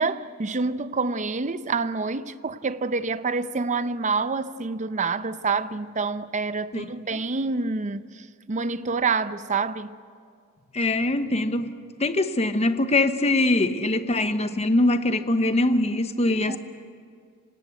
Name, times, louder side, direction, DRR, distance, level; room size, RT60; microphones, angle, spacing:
voice 1, 0.0-10.0 16.5-16.6, right 4 dB, 35° right, 0.7 m, -27 dB
voice 2, 10.7-11.7 12.0-16.6, left 2 dB, 30° left, 1.0 m, -23 dB
26.5 x 18.5 x 8.1 m
head